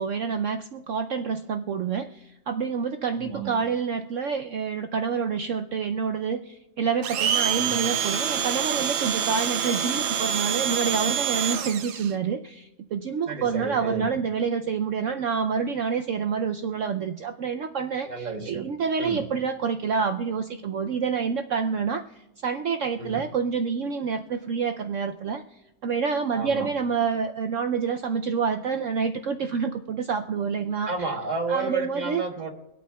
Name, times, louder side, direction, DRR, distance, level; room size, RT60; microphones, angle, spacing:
voice 1, 0.0-25.4 25.8-30.9 31.5-32.2, right 6 dB, 80° right, 6 dB, 0.6 m, -28 dB
voice 2, 3.2-3.5 7.5-7.8 13.3-14.1 18.0-18.7 19.0-19.2 23.0-23.2 26.3-26.7 30.9-32.5, right 4 dB, 30° right, 3 dB, 1.0 m, -31 dB
Domestic sounds home sounds, 7.0-12.1, right 8 dB, 60° right, 0.9 m, -26 dB
24.0 x 8.6 x 2.2 m, 0.94 s
omnidirectional pair, 1.9 m